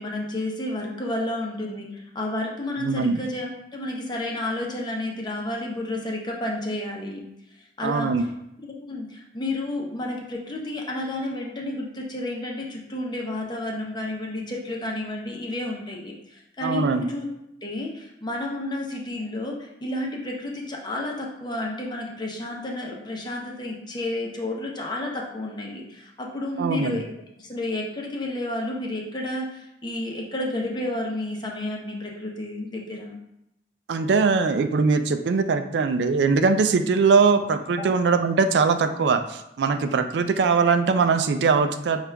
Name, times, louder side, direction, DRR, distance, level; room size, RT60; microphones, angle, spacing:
voice 1, 0.0-7.2 7.8-8.1 8.8-17.3 17.6-33.2 37.8-37.9, left 1 dB, 25° left, -1 dB, 0.8 m, -31 dB
voice 2, 2.8-3.2 7.8-8.2 16.6-17.1 26.6-27.0 33.9-42.1, right 4 dB, 70° right, 9 dB, 0.3 m, -21 dB
5.9 x 2.4 x 3.3 m, 0.83 s
head